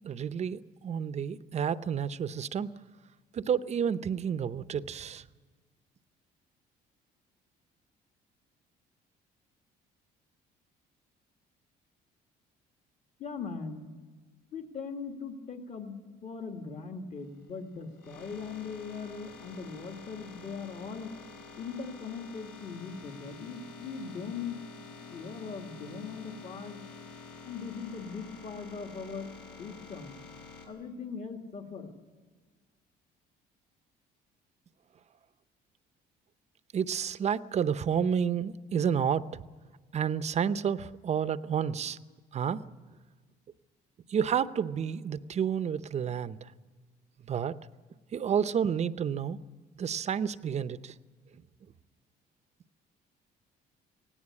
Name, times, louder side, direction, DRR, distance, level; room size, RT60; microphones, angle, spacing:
voice 1, 0.0-2.7 3.3-5.2 36.7-39.4 39.9-42.0 42.3-42.6 44.1-46.4 47.3-47.6 48.1-49.4 49.8-50.9, right 8 dB, 40° right, 14 dB, 0.7 m, -30 dB
voice 2, 13.2-13.9 14.5-16.0 16.2-21.1 21.6-24.6 25.1-26.8 27.5-29.3 29.6-30.2 30.7-31.9, left 5 dB, 45° left, 5 dB, 2.0 m, -40 dB
sound 1, 17.2-30.7, left 4 dB, 85° left, 6.8 m, -49 dB
17.5 x 17.5 x 9.7 m, 1.5 s
cardioid pair, 110°, 17 cm